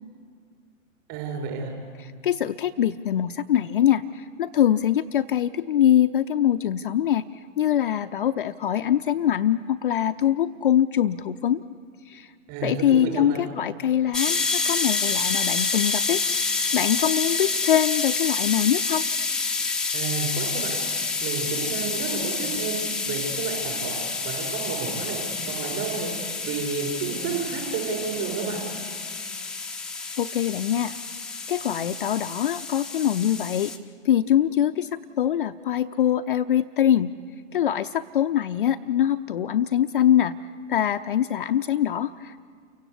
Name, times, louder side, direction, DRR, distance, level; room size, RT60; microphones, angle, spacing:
voice 1, 1.1-1.7 12.5-13.4 19.9-20.8 21.2-22.8 23.0-23.9 24.2-25.2 25.5-26.1 26.4-28.6, right 5 dB, 35° right, 1 dB, 6.7 m, -31 dB
voice 2, 2.0-7.2 7.6-11.6 12.1-12.3 12.6-16.2 16.7-19.0 30.2-30.9 31.5-33.7 34.0-34.9 35.2-37.1 37.5-40.3 40.7-42.4, left 10 dB, 40° left, 8 dB, 0.6 m, -23 dB
sound 1, 14.1-33.8, left 4 dB, ahead, 0.7 m, -28 dB
29.0 x 16.5 x 8.3 m, 2.1 s
figure-of-eight pair, 115°, 39 cm